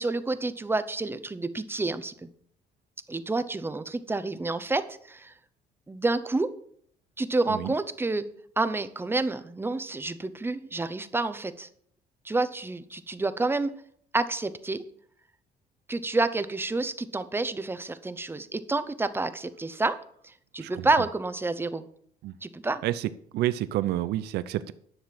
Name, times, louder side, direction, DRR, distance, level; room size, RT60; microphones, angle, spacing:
voice 1, 0.0-2.3 3.1-5.3 5.9-6.5 7.2-8.2 8.6-11.7 12.2-13.7 14.1-14.8 15.9-20.0 20.2-21.9 22.4-22.8, right 3 dB, 15° right, 0.8 m, -29 dB
voice 2, 22.8-24.7, right 14 dB, 75° right, 0.6 m, -29 dB
10.5 x 6.6 x 5.9 m
cardioid pair, 110°, 17 cm